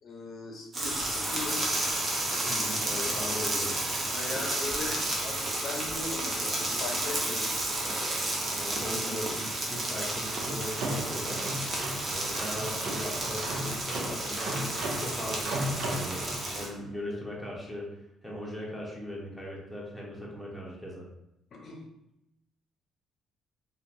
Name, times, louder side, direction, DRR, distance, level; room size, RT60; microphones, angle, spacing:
voice 1, 0.0-1.7 3.0-3.1 4.1-7.8 21.5-21.8, left 3 dB, 55° left, 0 dB, 0.6 m, -39 dB
sound 1, 0.7-16.7, right 1 dB, 40° right, 0.7 m, -32 dB
voice 2, 2.5-3.7 8.5-11.4 12.0-17.9 18.2-21.0, equal, 5° right, -4 dB, 0.8 m, -39 dB
sound 2, 10.1-16.8, right 1 dB, 70° right, 0.4 m, -36 dB
2.7 x 2.3 x 2.5 m, 0.85 s
cardioid pair, 95°, 0 cm